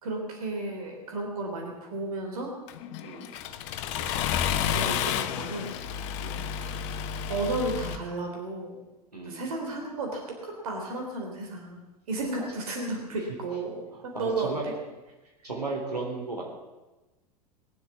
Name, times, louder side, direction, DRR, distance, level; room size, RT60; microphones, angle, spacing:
voice 1, 0.0-2.5 4.7-5.8 6.7-6.9 7.3-8.8 9.3-11.8 12.1-14.8, right 2 dB, 65° right, 2 dB, 3.6 m, -33 dB
Accelerating revving vroom, 2.7-8.0, left 9 dB, 50° left, 1.0 m, -31 dB
voice 2, 3.0-3.4 6.2-6.4 9.1-9.4 14.1-14.7 15.4-16.4, right 3 dB, 85° right, -1 dB, 3.7 m, -35 dB
22.0 x 7.8 x 7.3 m, 1.1 s
figure-of-eight pair, 85°, 20 cm